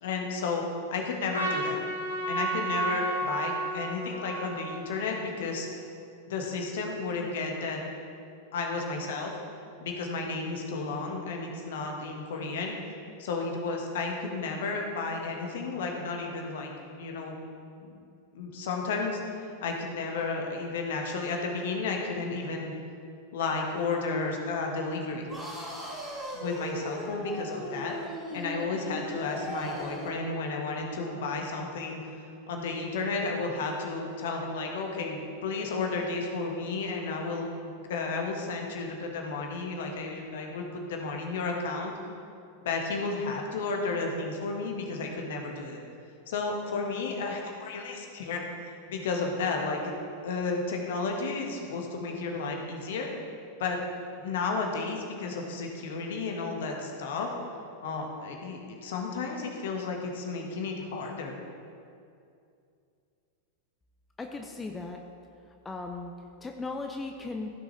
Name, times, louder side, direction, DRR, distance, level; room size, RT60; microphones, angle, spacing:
voice 1, 0.0-0.6 0.9-1.8 2.3-5.7 6.3-7.8 8.5-9.3 9.8-12.8 13.2-17.3 17.8-18.0 18.3-22.7 23.3-25.3 26.3-28.0 28.3-32.1 32.5-41.9 42.6-45.8 46.3-49.9 50.2-53.1 53.6-53.8 54.2-57.3 57.8-61.4, left 4 dB, 55° left, 2 dB, 1.4 m, -32 dB
Trumpet, 1.3-5.7, right 2 dB, 75° right, 1.6 m, -32 dB
sound 1, 25.3-30.2, equal, 5° right, 2.5 m, -38 dB
voice 2, 64.2-65.0 65.6-66.1 66.4-67.5, left 3 dB, 15° left, 3 dB, 0.6 m, -37 dB
15.0 x 6.3 x 3.2 m, 2.5 s
figure-of-eight pair, 90°, 0 cm